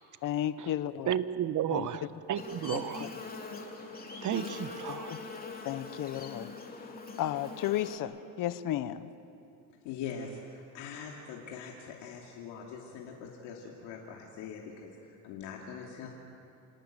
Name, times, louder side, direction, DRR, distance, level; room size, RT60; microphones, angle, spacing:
voice 1, 0.2-1.1 1.7-1.9 2.7-3.1 4.9-5.2 5.6-9.1, left 12 dB, 55° left, 13 dB, 1.0 m, -34 dB
voice 2, 1.1-3.1 4.2-5.2, right 10 dB, 50° right, 13 dB, 1.2 m, -33 dB
Buzz, 2.4-8.0, left 4 dB, 20° left, 3.1 m, -42 dB
voice 3, 9.8-16.1, left 6 dB, 85° left, -1 dB, 2.7 m, -43 dB
28.0 x 18.5 x 9.0 m, 2.7 s
cardioid pair, 105°, 39 cm